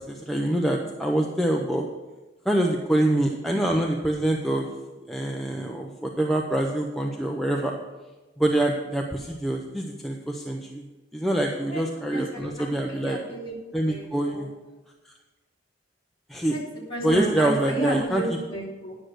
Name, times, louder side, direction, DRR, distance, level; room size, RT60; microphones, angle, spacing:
voice 1, 0.1-1.9 2.5-4.7 5.1-7.7 8.4-10.8 11.1-13.2 13.7-14.5 16.3-16.6 17.0-18.2, right 1 dB, ahead, -1 dB, 0.6 m, -25 dB
voice 2, 12.1-13.6 13.9-14.5 16.5-16.6 16.9-19.0, right 1 dB, 25° left, -5 dB, 2.8 m, -31 dB
9.9 x 6.4 x 6.3 m, 1.2 s
head